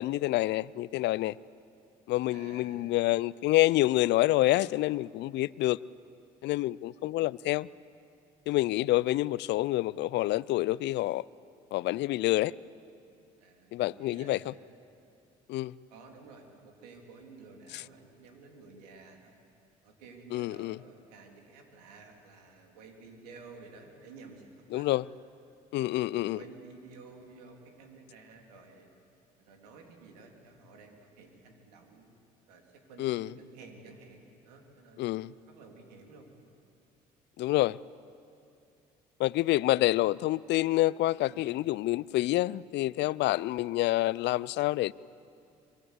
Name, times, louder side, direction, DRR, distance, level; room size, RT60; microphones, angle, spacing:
voice 1, 0.0-1.4 2.1-5.8 6.4-7.7 8.5-11.2 11.7-12.5 13.7-14.5 15.5-15.7 17.7-17.8 20.3-20.8 24.7-25.1 25.7-26.4 33.0-33.3 35.0-35.3 37.4-37.8 39.2-44.9, left 17 dB, 65° left, 0.5 m, -27 dB
voice 2, 2.3-3.1 13.4-14.4 15.9-19.4 19.8-24.9 25.8-25.9 26.2-28.9 29.4-32.2 32.5-35.2 35.5-36.3 41.2-41.5, right 4 dB, 85° right, 3.3 m, -52 dB
25.0 x 23.0 x 8.2 m
hypercardioid pair, 55°, 20 cm